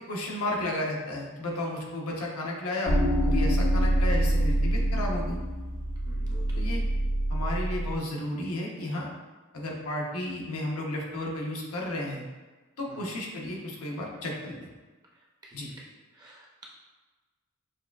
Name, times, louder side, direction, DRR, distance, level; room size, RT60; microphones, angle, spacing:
voice 1, 0.1-3.0 3.2-5.4 6.5-6.8 7.3-9.1 9.5-12.2 12.8-14.7 15.5-15.7, left 1 dB, 85° left, -2 dB, 0.8 m, -33 dB
sound 1, 2.9-8.0, right 1 dB, 40° left, 0.5 m, -25 dB
voice 2, 6.1-6.6 12.9-13.1 15.4-16.6, right 1 dB, 20° right, -3 dB, 0.5 m, -50 dB
6.2 x 2.3 x 2.3 m, 1.3 s
head